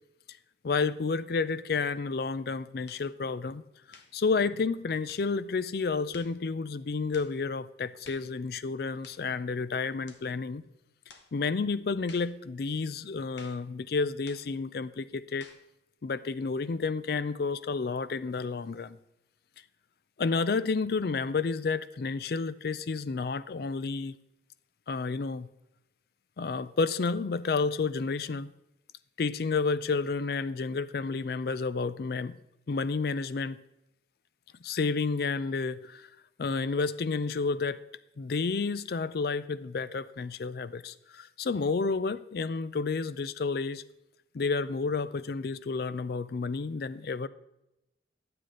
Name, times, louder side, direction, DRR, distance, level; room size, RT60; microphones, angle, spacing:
voice 1, 0.6-3.6 3.9-10.6 11.3-15.5 16.0-19.0 20.2-24.2 24.9-25.5 26.4-28.5 29.2-32.4 32.7-33.6 34.6-36.1 36.4-37.8 38.2-43.8 44.3-47.3, left 4 dB, 60° left, 15 dB, 0.4 m, -30 dB
sound 1, 2.9-3.1 3.9-4.2 5.1-5.3 6.1-6.4 7.1-7.4 8.0-8.3 9.0-9.3 10.1-10.3 11.1-11.3 12.1-12.4 13.4-13.7 14.3-14.5 15.4-15.7, left 5 dB, 85° left, 1.2 m, -52 dB
11.5 x 7.7 x 3.8 m, 0.89 s
head